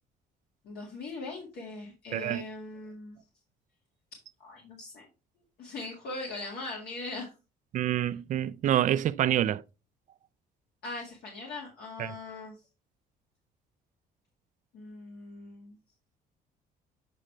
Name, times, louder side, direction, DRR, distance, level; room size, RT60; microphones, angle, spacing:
voice 1, 0.6-3.2 4.4-5.0 5.6-7.3 10.8-12.5 14.7-15.8, left 3 dB, 70° left, 1.9 m, -40 dB
voice 2, 2.1-2.4 7.7-9.6 12.0-12.2, right 11 dB, 50° right, 0.4 m, -27 dB
7.5 x 5.0 x 3.2 m
cardioid pair, 110°, 17 cm